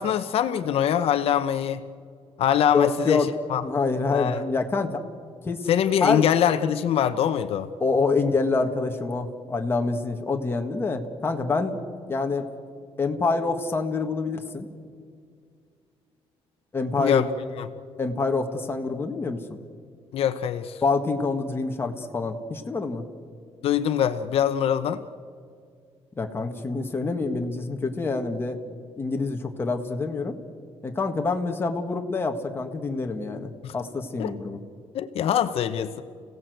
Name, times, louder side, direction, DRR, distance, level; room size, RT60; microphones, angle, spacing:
voice 1, 0.0-1.8 2.4-3.6 4.1-4.4 5.7-7.7 17.0-17.3 17.6-17.7 20.1-20.8 23.6-25.0 33.6-33.7 34.2-34.3 34.9-36.0, left 9 dB, 65° left, 11 dB, 0.9 m, -23 dB
voice 2, 2.7-3.3 3.6-5.0 5.4-5.7 6.0-6.3 7.8-11.8 12.1-12.5 13.0-14.7 16.7-17.3 18.0-19.4 20.8-23.0 26.2-28.6 29.0-30.4 30.8-34.6, left 4 dB, 20° left, 3 dB, 1.7 m, -26 dB
30.0 x 17.0 x 7.9 m, 2.2 s
cardioid pair, 160°, 11 cm